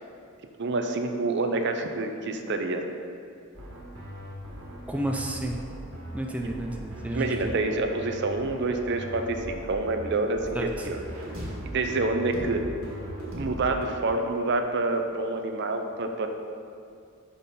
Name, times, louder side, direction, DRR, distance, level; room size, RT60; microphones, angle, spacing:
voice 1, 0.6-2.8 7.1-11.0 11.6-12.6 13.4-16.3, right 2 dB, 55° right, 5 dB, 0.6 m, -27 dB
sound 1, 3.5-13.9, equal, 75° right, 1.8 m, -39 dB
voice 2, 4.9-5.6 6.1-7.5 10.5-10.9, right 1 dB, 5° right, 1 dB, 0.4 m, -31 dB
6.2 x 5.6 x 5.3 m, 2.4 s
head